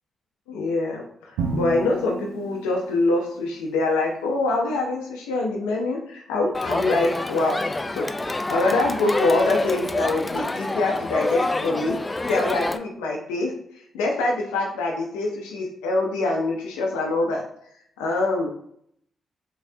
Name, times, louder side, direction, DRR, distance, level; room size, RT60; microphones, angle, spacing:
voice 1, 0.5-7.6 8.0-8.1 8.5-12.0 12.3-13.5 13.9-17.4 18.0-18.5, left 2 dB, 85° left, 0 dB, 0.5 m, -24 dB
Drum, 1.4-3.4, right 4 dB, 85° right, 0.5 m, -31 dB
Crowd, 6.5-12.8, left 2 dB, 25° left, 0.3 m, -27 dB
3.6 x 3.2 x 2.7 m, 0.67 s
hypercardioid pair, 45°, 0 cm